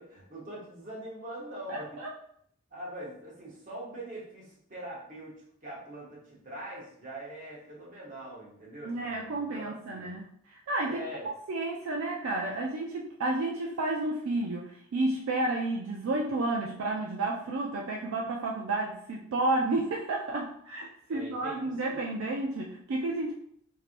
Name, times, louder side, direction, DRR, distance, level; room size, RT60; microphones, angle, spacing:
voice 1, 0.0-2.0 2.7-10.1 10.8-11.2 21.1-22.0, right 1 dB, 35° right, -5 dB, 1.0 m, -43 dB
voice 2, 1.7-2.1 8.8-23.3, right 2 dB, 70° right, 0 dB, 0.4 m, -31 dB
3.2 x 2.7 x 2.5 m, 0.68 s
head